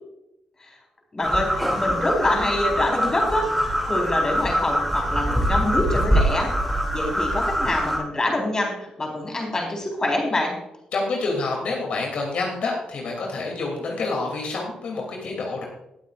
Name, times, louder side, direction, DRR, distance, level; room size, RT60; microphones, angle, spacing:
voice 1, 1.1-3.5 3.8-6.5 6.9-10.6, left 1 dB, 25° left, 0 dB, 4.2 m, -25 dB
sound 1, 1.2-8.0, equal, ahead, 2.7 m, -23 dB
voice 2, 10.9-15.6, left 3 dB, 65° left, 0 dB, 2.9 m, -27 dB
19.5 x 8.4 x 2.5 m, 0.88 s
cardioid pair, 110°, 2 cm